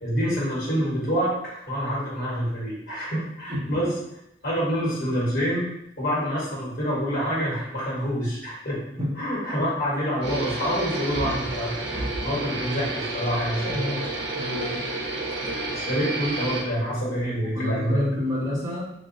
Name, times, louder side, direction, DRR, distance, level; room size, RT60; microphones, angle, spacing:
voice 1, 0.0-3.9 4.4-5.6 6.0-8.8 9.2-14.0 15.7-18.0, equal, 50° left, -6 dB, 1.4 m, -27 dB
sound 1, 10.2-16.6, right 2 dB, 80° right, 0.7 m, -30 dB
voice 2, 13.6-14.1 14.4-14.8 17.5-18.8, left 1 dB, 20° right, -10 dB, 1.3 m, -29 dB
3.8 x 2.5 x 2.6 m, 0.79 s
head